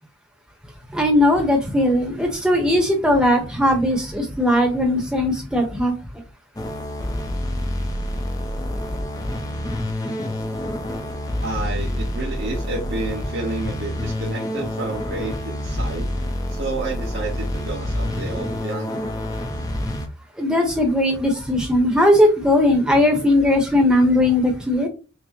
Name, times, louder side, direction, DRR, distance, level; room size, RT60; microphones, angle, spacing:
voice 1, 0.9-5.9 20.4-24.9, left 1 dB, 5° right, 0.8 m, -18 dB
sound 1, 6.6-20.1, left 1 dB, 15° left, 0.5 m, -27 dB
voice 2, 11.4-19.0, right 2 dB, 50° right, 1.0 m, -30 dB
5.9 x 2.1 x 2.9 m
head